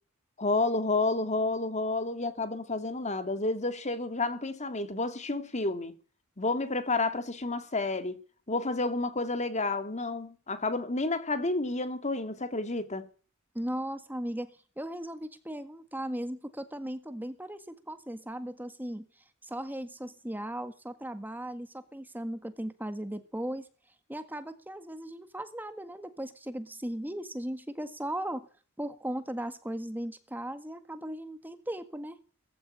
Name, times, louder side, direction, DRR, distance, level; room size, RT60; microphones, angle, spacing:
voice 1, 0.4-5.9 6.4-8.2 8.5-13.1, left 2 dB, 35° left, 2.2 m, -30 dB
voice 2, 13.5-23.7 24.1-28.4 28.8-32.2, right 1 dB, 10° right, 1.7 m, -37 dB
20.0 x 15.0 x 9.9 m
head